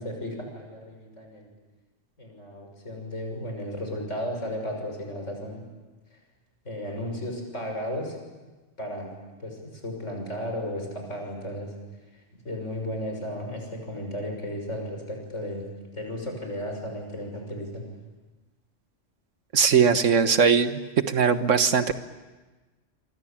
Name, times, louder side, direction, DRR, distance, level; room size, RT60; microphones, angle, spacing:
voice 1, 0.0-1.5 2.2-5.6 6.6-8.1 8.8-9.1 9.4-11.7 12.4-15.7 15.9-17.8, left 1 dB, 75° left, 2 dB, 6.8 m, -34 dB
voice 2, 19.5-20.8 21.1-21.9, right 6 dB, 80° right, 10 dB, 1.7 m, -20 dB
27.5 x 24.0 x 8.8 m, 1.2 s
omnidirectional pair, 1.3 m